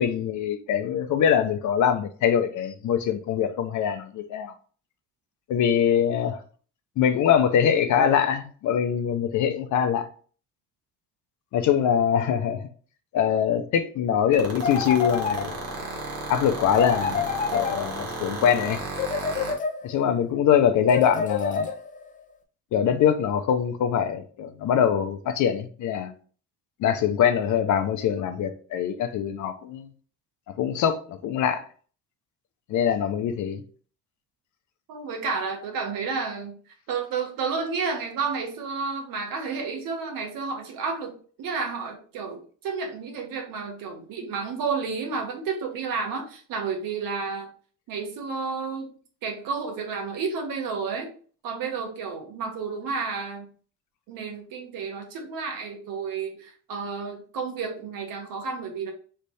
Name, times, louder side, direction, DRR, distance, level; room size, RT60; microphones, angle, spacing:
voice 1, 0.0-4.5 5.5-6.4 7.0-10.1 11.5-12.6 13.1-15.6 16.3-18.8 19.8-21.8 22.7-26.1 26.8-29.9 30.6-31.6 32.7-33.6, left 8 dB, 65° left, 0.7 m, -23 dB
sound 1, 14.3-19.5, right 4 dB, 45° right, 1.3 m, -33 dB
sound 2, 14.6-15.9 16.7-18.3 18.9-20.1 20.9-22.1, left 6 dB, 25° left, 0.4 m, -28 dB
voice 2, 34.9-36.6 36.9-47.5 47.9-48.9 49.2-51.1 51.4-53.5 54.1-58.9, right 5 dB, 90° right, 1.3 m, -31 dB
3.3 x 3.3 x 4.1 m
cardioid pair, 170°, 33 cm